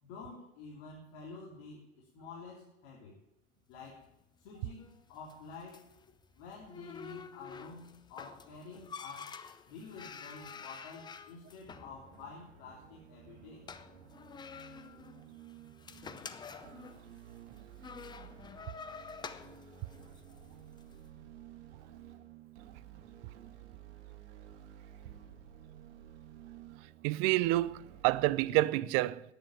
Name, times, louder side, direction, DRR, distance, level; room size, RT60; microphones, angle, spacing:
voice 1, 0.0-3.2 3.7-4.0 4.4-5.8 6.4-9.3 9.7-13.6, left 4 dB, 50° left, 3.3 m, -49 dB
sound 1, 3.7-21.0, left 5 dB, 10° left, 0.6 m, -50 dB
sound 2, 11.7-28.7, right 10 dB, 65° right, 2.2 m, -54 dB
voice 2, 27.0-29.2, right 17 dB, 40° right, 0.5 m, -28 dB
10.5 x 9.2 x 8.8 m
hypercardioid pair, 110°, 35 cm